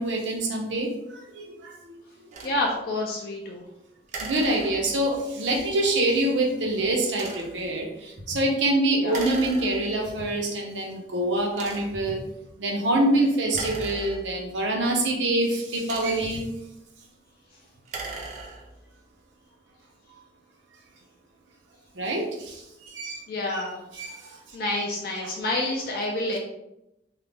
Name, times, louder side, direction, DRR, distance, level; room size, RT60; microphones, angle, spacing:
voice 1, 0.0-1.9 4.2-12.2 12.6-16.4 20.1-20.2 21.9-23.2 23.9-24.4 25.2-25.3, right 1 dB, 85° right, 0 dB, 0.6 m, -26 dB
sound 1, 2.3-2.6 4.1-5.1 7.1-7.6 9.1-10.1 10.8-10.9 11.5-12.1 13.5-14.6 15.6-16.5 17.7-18.8, right 3 dB, 40° right, 0.4 m, -38 dB
voice 2, 2.4-3.6 8.9-9.2 23.3-23.8 24.5-26.4, left 1 dB, 55° left, -1 dB, 0.3 m, -28 dB
2.3 x 2.0 x 3.2 m, 0.87 s
head